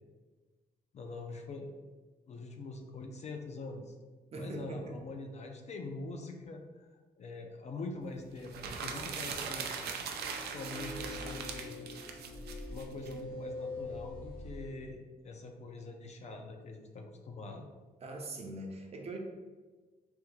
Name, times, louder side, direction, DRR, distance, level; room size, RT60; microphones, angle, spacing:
voice 1, 0.9-1.8 2.3-3.9 4.3-6.9 7.2-9.9 10.5-12.2 12.7-17.7, left 3 dB, 45° left, 3 dB, 0.4 m, -44 dB
voice 2, 4.3-5.0 18.0-19.2, right 2 dB, 40° right, 1 dB, 0.6 m, -41 dB
sound 1, 8.4-13.1, right 6 dB, 85° right, 0.4 m, -40 dB
sound 2, 10.0-14.7, left 2 dB, 70° left, 0.9 m, -44 dB
3.5 x 2.6 x 3.0 m, 1.3 s
cardioid pair, 115°, 16 cm